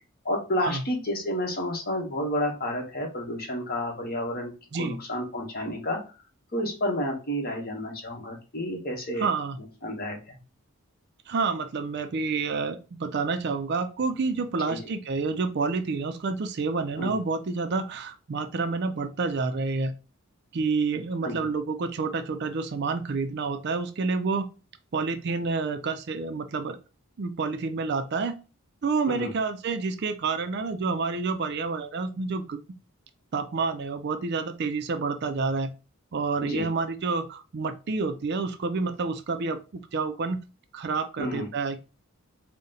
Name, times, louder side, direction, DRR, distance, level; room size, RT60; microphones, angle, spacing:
voice 1, 0.2-4.5 4.8-6.0 6.5-9.3 9.8-10.4 14.7-14.9 17.0-17.2 21.2-21.4 29.1-29.3 36.4-36.7 41.2-41.5, left 1 dB, 45° left, 1 dB, 1.1 m, -30 dB
voice 2, 9.2-9.6 11.3-19.9 20.5-24.5 24.9-26.8 27.2-28.4 28.8-32.6 33.3-35.7 36.1-40.4 40.7-41.8, right 4 dB, 50° right, 9 dB, 0.4 m, -29 dB
4.0 x 2.1 x 3.8 m, 0.32 s
head